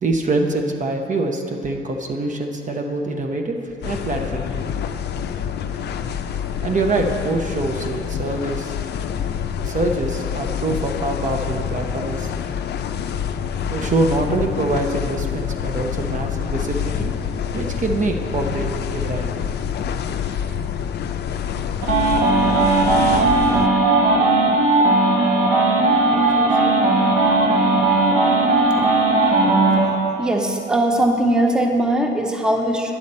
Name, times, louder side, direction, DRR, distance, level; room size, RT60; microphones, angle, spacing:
voice 1, 0.0-3.6 3.8-4.7 6.6-8.7 9.6-12.3 13.7-17.1 17.5-19.3 26.0-27.1, right 2 dB, 40° right, 3 dB, 0.7 m, -25 dB
sound 1, 3.8-23.7, left 8 dB, 55° left, 0.4 m, -27 dB
sound 2, 21.8-29.8, right 2 dB, 90° right, 1.7 m, -17 dB
voice 2, 30.2-32.9, right 1 dB, 5° right, 2 dB, 0.7 m, -20 dB
9.7 x 6.5 x 4.2 m, 2.5 s
cardioid pair, 90°, 20 cm